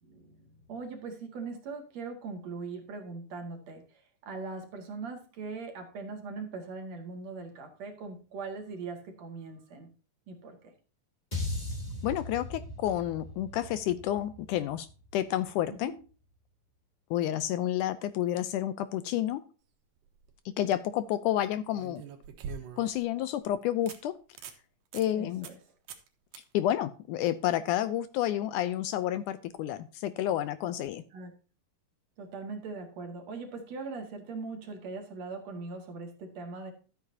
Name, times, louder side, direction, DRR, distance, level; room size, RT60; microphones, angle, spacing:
voice 1, 0.0-9.9 10.3-10.7 15.7-16.0 25.1-25.6 30.8-31.3 32.2-36.7, right 4 dB, 55° right, 4 dB, 2.9 m, -41 dB
sound 1, 11.3-15.7, left 2 dB, 15° left, 2.3 m, -39 dB
voice 2, 12.0-14.9 15.1-15.9 17.1-19.4 20.5-22.0 22.8-24.1 24.9-25.5 26.5-31.0, left 12 dB, 80° left, 14 dB, 1.9 m, -30 dB
sound 2, 20.0-20.3 21.7-23.0 23.4-23.5 23.9-24.0 24.3-24.6 24.9-25.1 25.4-25.6 25.9-26.1 26.3-26.4 29.5-29.6, right 6 dB, 80° right, 2.9 m, -43 dB
13.0 x 8.8 x 2.8 m, 0.37 s
omnidirectional pair, 3.9 m